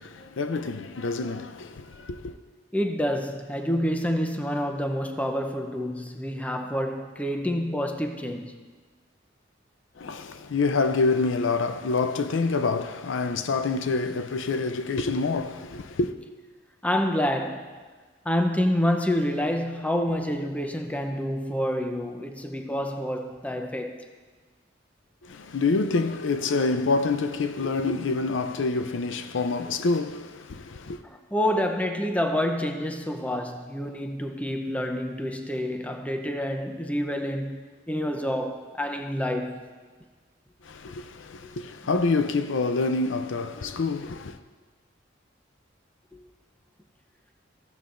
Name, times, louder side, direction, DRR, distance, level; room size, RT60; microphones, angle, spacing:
voice 1, 0.0-2.3 10.0-16.1 25.2-31.0 40.6-44.4, left 3 dB, 75° left, 0.6 m, -27 dB
voice 2, 2.7-8.7 16.8-17.7 18.2-24.1 31.0-37.6 37.9-39.6 41.4-41.5 46.1-46.2, equal, 10° left, 0.7 m, -28 dB
15.0 x 12.5 x 2.6 m
head